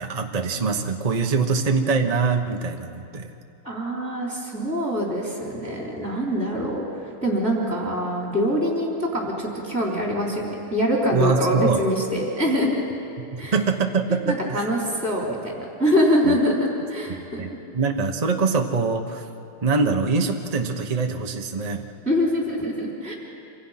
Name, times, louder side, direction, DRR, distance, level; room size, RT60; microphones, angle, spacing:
voice 1, 0.0-3.3 11.1-11.8 13.5-14.7 16.2-16.4 17.4-19.3 19.6-21.9, right 4 dB, 30° right, 3 dB, 0.7 m, -23 dB
voice 2, 3.6-12.9 13.4-13.6 14.3-17.4 22.1-23.1, equal, 5° right, -3 dB, 3.6 m, -24 dB
26.5 x 26.0 x 5.9 m, 2.7 s
omnidirectional pair, 2.4 m